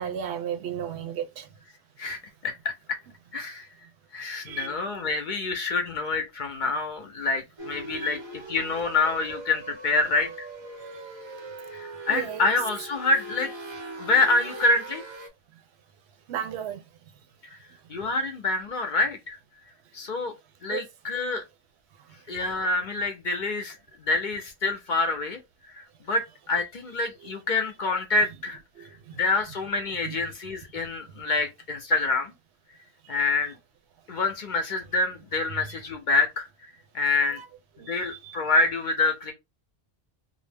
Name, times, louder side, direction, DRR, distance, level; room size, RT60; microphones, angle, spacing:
voice 1, 0.0-1.5 4.4-4.8 7.9-8.2 12.1-12.5 16.3-16.8 20.7-20.8 27.2-27.3 28.8-29.2 30.0-30.2 35.5-35.8 37.2-37.5 37.8-38.4, right 9 dB, 75° right, 0.8 m, -35 dB
voice 2, 2.0-2.7 3.3-3.7 4.1-10.5 11.7-13.5 14.0-15.0 17.5-17.6 17.9-19.4 19.9-20.3 20.6-21.4 22.3-25.4 25.7-28.6 29.2-32.3 33.1-33.6 34.1-36.5 36.9-37.4 37.9-39.3, left 3 dB, 55° left, 0.6 m, -26 dB
sound 1, 7.6-15.3, right 2 dB, 35° right, 0.5 m, -40 dB
2.6 x 2.0 x 3.3 m
omnidirectional pair, 1.1 m